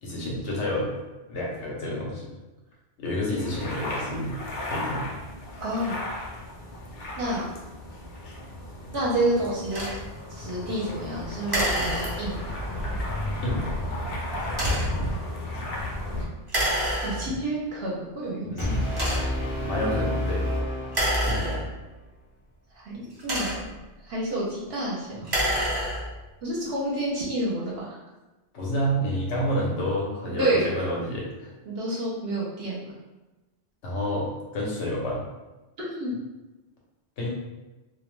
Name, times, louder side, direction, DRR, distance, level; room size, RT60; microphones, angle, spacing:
voice 1, 0.0-0.9 1.3-2.3 3.0-4.3 4.6-5.1 13.4-13.7 18.4-18.9 19.6-20.4 21.3-21.7 28.5-31.5 33.8-35.2 37.2-37.3, equal, 85° left, -3 dB, 1.1 m, -29 dB
sound 1, 3.3-16.2, left 1 dB, 65° left, 0.8 m, -33 dB
voice 2, 5.6-6.0 7.2-7.5 8.9-9.8 10.3-12.5 17.0-18.8 19.2-19.4 21.2-21.5 22.8-23.7 24.0-25.3 26.4-28.0 30.4-30.7 31.7-32.8 35.8-36.1, right 1 dB, 65° right, -5 dB, 0.8 m, -29 dB
sound 2, 9.7-10.0 11.5-12.5 14.5-15.0 16.5-17.5 18.2-18.3 18.9-19.5 20.8-22.0 23.0-23.9 25.1-26.2, right 1 dB, 30° right, 0.5 m, -28 dB
Brass instrument, 18.6-21.7, left 1 dB, 40° left, 0.5 m, -29 dB
2.4 x 2.1 x 3.0 m, 1.1 s
omnidirectional pair, 1.2 m